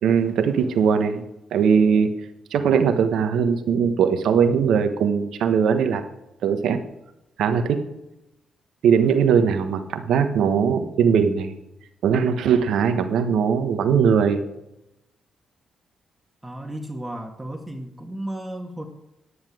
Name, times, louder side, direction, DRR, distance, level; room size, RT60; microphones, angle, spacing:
voice 1, 0.0-1.2 1.5-2.1 2.5-6.0 6.4-6.8 7.4-7.8 8.8-11.5 12.0-14.4, right 7 dB, 75° right, 8 dB, 1.2 m, -20 dB
voice 2, 16.4-18.9, right 1 dB, 15° right, 2 dB, 1.7 m, -34 dB
10.5 x 9.7 x 4.9 m, 0.90 s
supercardioid pair, 55°, 0 cm